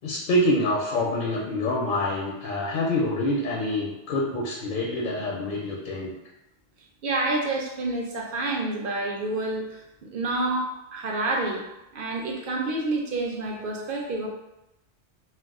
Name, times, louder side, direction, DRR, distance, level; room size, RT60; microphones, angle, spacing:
voice 1, 0.0-6.1, left 1 dB, 60° left, -4 dB, 0.6 m, -26 dB
voice 2, 7.0-11.6 11.9-14.3, right 2 dB, 60° right, 0 dB, 0.6 m, -28 dB
2.3 x 2.2 x 3.5 m, 0.93 s
omnidirectional pair, 1.2 m